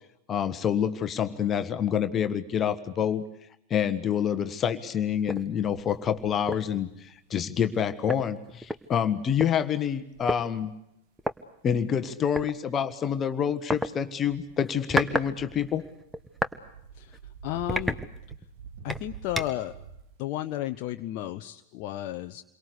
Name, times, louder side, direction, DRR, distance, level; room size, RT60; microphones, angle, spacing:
voice 1, 0.3-3.3 3.7-10.7 11.6-15.8, left 8 dB, 25° left, 9 dB, 1.5 m, -27 dB
sound 1, 4.9-7.2 7.6-8.3 9.5-9.6 10.1-10.7 11.8-12.6 14.3-20.4, right 7 dB, 55° right, 2.7 m, -48 dB
sound 2, 5.3-5.5 5.9-6.1 6.5-6.8 7.7-7.8 8.1-9.5 10.3-10.4 11.2-11.4 12.4-12.5 13.7-13.9 14.6-15.3 15.6-16.6 17.0-17.2 17.7-18.5 18.9-19.7, right 1 dB, 5° right, 1.2 m, -31 dB
voice 2, 16.9-18.0 18.8-19.7 20.2-22.4, left 14 dB, 45° left, 6 dB, 1.0 m, -33 dB
28.5 x 23.5 x 8.2 m, 0.79 s
figure-of-eight pair, 90°, 0 cm